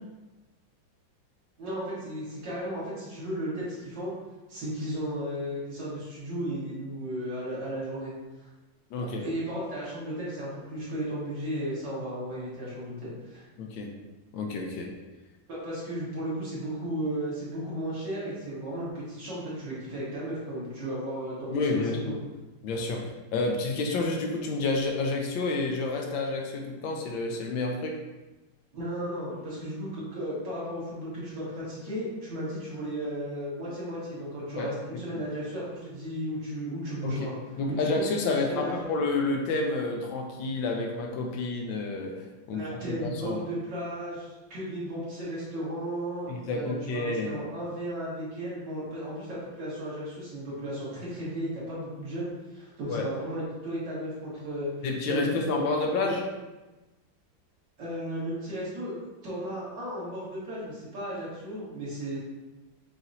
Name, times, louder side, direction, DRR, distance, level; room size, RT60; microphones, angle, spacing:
voice 1, 1.6-4.1 4.5-8.1 9.0-13.4 15.5-22.1 28.7-37.3 37.7-38.9 42.5-54.7 55.1-55.7 56.0-56.2 57.8-58.9 59.2-62.2, right 1 dB, 65° right, -8 dB, 2.2 m, -35 dB
voice 2, 8.9-9.2 13.6-13.9 14.3-14.9 21.5-22.1 22.6-23.0 23.3-28.0 34.6-34.7 37.0-37.3 37.6-43.4 46.3-47.3 52.9-53.0 54.8-56.2, left 3 dB, 80° left, 1 dB, 1.3 m, -29 dB
5.8 x 2.9 x 2.6 m, 1.1 s
omnidirectional pair, 2.1 m